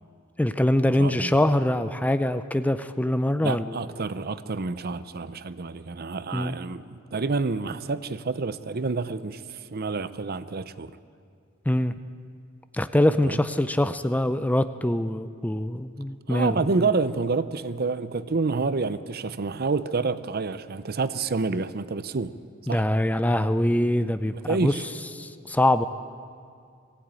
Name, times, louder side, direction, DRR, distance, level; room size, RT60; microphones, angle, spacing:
voice 1, 0.4-3.6 6.3-6.5 11.7-11.9 12.7-16.5 22.7-24.3 24.6-24.7 25.2-25.9, left 1 dB, 10° left, 0.5 m, -23 dB
voice 2, 1.0-1.4 3.4-10.9 13.2-13.4 16.3-22.3 22.7-22.9 24.3-24.8, right 4 dB, 50° right, 0.7 m, -28 dB
20.0 x 16.0 x 9.0 m
head